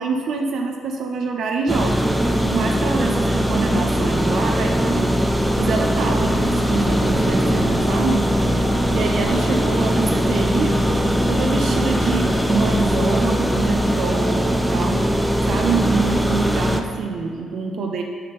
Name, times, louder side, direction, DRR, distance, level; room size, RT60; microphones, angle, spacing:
voice 1, 0.0-10.8 11.3-18.0, right 4 dB, 70° right, 2 dB, 0.4 m, -25 dB
sound 1, 1.7-16.8, equal, ahead, 0.4 m, -20 dB
sound 2, 5.5-11.2, equal, 25° right, 1.0 m, -38 dB
sound 3, 6.3-14.0, left 5 dB, 75° left, 0.5 m, -33 dB
5.6 x 5.4 x 3.4 m, 2.2 s
cardioid pair, 90°, 0 cm